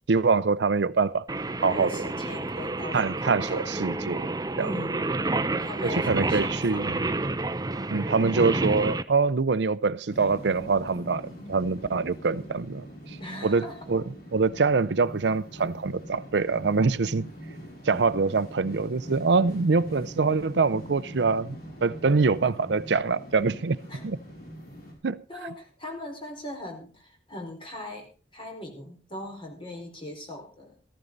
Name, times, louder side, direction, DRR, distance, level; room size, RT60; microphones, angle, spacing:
voice 1, 0.1-1.2 1.6-2.1 2.9-4.3 4.6-4.7 5.8-7.0 7.9-13.2 13.4-14.0 14.3-17.3 17.8-23.8 24.0-24.2 25.0-25.2, right 4 dB, 75° right, 0.6 m, -24 dB
Singing, 1.3-9.0, right 2 dB, 20° right, 0.7 m, -29 dB
voice 2, 1.7-3.6 4.6-5.0 5.5-7.0 13.2-13.8 23.9-24.0 25.3-28.1 28.3-30.8, left 1 dB, 30° left, 4.8 m, -40 dB
sound 1, 10.1-24.9, equal, 60° left, 6.3 m, -42 dB
14.5 x 14.5 x 4.0 m
head